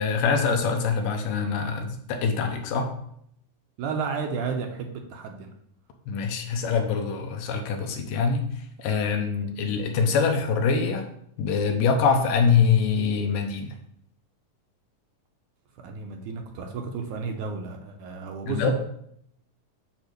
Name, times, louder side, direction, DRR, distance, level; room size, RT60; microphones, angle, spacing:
voice 1, 0.0-2.9 6.1-8.5 8.8-11.1 11.4-13.7 18.5-18.7, left 5 dB, 75° left, 4 dB, 2.5 m, -24 dB
voice 2, 3.8-5.5 15.8-18.7, right 5 dB, 75° right, 3 dB, 2.1 m, -32 dB
8.5 x 3.5 x 6.5 m, 0.71 s
omnidirectional pair, 3.9 m